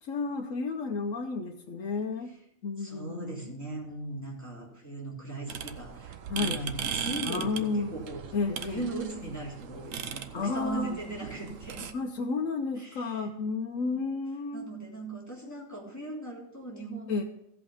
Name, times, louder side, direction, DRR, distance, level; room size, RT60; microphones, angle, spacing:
voice 1, 0.0-2.3 2.6-3.5 6.3-6.7 7.2-8.0 8.3-8.9 10.3-11.0 11.9-14.7 17.1-17.2, left 4 dB, 85° left, 1 dB, 1.2 m, -32 dB
voice 2, 2.8-8.2 8.6-11.9 12.7-13.3 13.8-13.9 14.5-17.2, right 2 dB, 15° left, -5 dB, 3.1 m, -38 dB
sound 1, 5.5-11.9, right 8 dB, 85° right, 1.2 m, -38 dB
15.5 x 5.7 x 5.5 m, 0.80 s
omnidirectional pair, 1.3 m